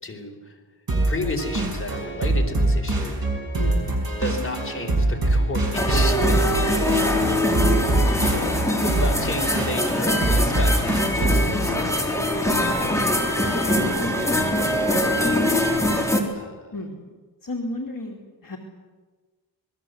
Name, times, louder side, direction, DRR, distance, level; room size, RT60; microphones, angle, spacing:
voice 1, 0.0-0.6 1.1-3.2 4.2-6.4 8.7-11.9 12.4-12.9 13.9-14.8 16.3-16.7, left 2 dB, 30° left, 2 dB, 4.0 m, -33 dB
sound 1, 0.9-11.5, right 2 dB, 50° right, 6.2 m, -24 dB
voice 2, 3.5-4.0 7.0-7.2 8.3-8.7 15.4-15.8 16.7-17.0 17.4-18.6, left 2 dB, 45° left, 1 dB, 2.9 m, -33 dB
sound 2, 5.7-16.2, left 1 dB, 5° left, 3.6 m, -23 dB
27.0 x 20.5 x 8.0 m, 1.3 s
wide cardioid pair, 115°, 44 cm